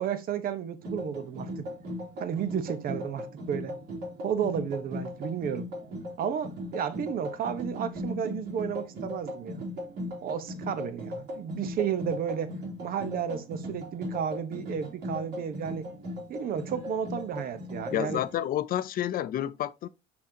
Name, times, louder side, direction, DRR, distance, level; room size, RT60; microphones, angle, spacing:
voice 1, 0.0-1.7 2.2-3.8 4.2-5.7 6.2-9.6 10.2-15.9 16.3-18.2, right 8 dB, 60° right, 0.9 m, -32 dB
sound 1, 0.8-18.4, left 1 dB, 85° right, 3.1 m, -38 dB
voice 2, 17.9-19.9, left 12 dB, 60° left, 0.5 m, -29 dB
6.1 x 5.6 x 2.8 m
cardioid pair, 110°, 17 cm